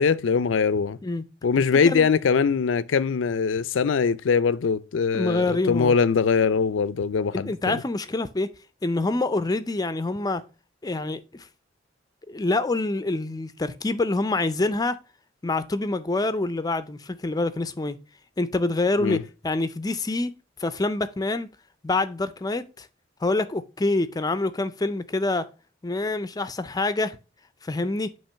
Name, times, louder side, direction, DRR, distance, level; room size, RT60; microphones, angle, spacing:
voice 1, 0.0-1.0 1.4-7.8 19.0-19.2, left 5 dB, 85° left, 0.4 m, -22 dB
voice 2, 5.1-5.9 7.3-8.5 8.8-10.4 10.8-11.5 12.3-15.0 15.4-18.0 18.4-20.3 20.6-21.5 21.8-22.9 23.2-25.5 25.8-27.2 27.6-28.1, left 2 dB, 20° left, 0.4 m, -26 dB
8.8 x 3.0 x 5.5 m
head